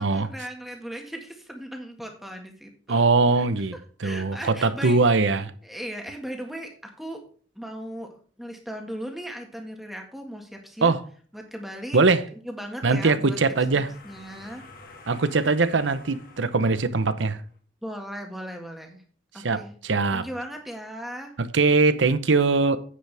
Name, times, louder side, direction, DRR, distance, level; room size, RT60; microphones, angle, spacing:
voice 1, 0.0-3.0 3.4-3.5 4.0-5.0 5.4-7.2 7.6-8.1 8.4-10.9 11.3-12.0 12.4-13.4 14.0-14.7 17.8-19.0 19.3-19.7 20.1-21.3, equal, ahead, 1.7 m, -37 dB
voice 2, 2.9-3.8 4.0-5.5 10.8-11.0 11.9-12.2 12.8-13.9 15.1-17.4 19.4-20.3 21.4-22.8, right 3 dB, 80° right, 0.8 m, -21 dB
sound 1, 12.7-17.5, left 3 dB, 45° left, 1.6 m, -50 dB
9.8 x 8.4 x 3.4 m
head